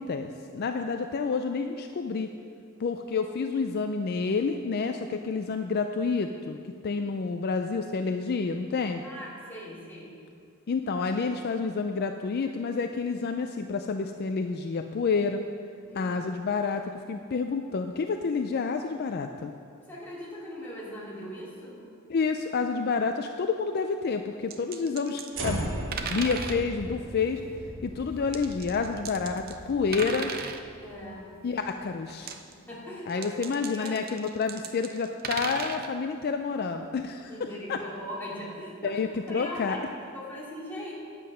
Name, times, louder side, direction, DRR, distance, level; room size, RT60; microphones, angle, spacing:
voice 1, 0.0-2.3 2.8-9.0 10.7-15.4 15.9-19.5 22.1-25.7 26.0-27.4 27.8-30.3 31.4-32.3 33.1-37.3 37.7-37.8 38.8-39.8, left 4 dB, 50° left, 6 dB, 0.4 m, -29 dB
voice 2, 9.0-10.1 15.9-16.1 19.9-21.8 30.8-31.3 32.5-34.0 37.3-39.0 39.3-40.9, equal, 10° left, -7 dB, 2.8 m, -40 dB
sound 1, 24.5-25.5 25.9-26.7 28.3-29.6 29.9-30.6 32.1-32.5 33.1-35.9, right 5 dB, 45° right, 0.6 m, -36 dB
sound 2, 25.3-31.6, right 1 dB, 65° right, 1.4 m, -38 dB
9.7 x 8.3 x 5.5 m, 2.3 s
head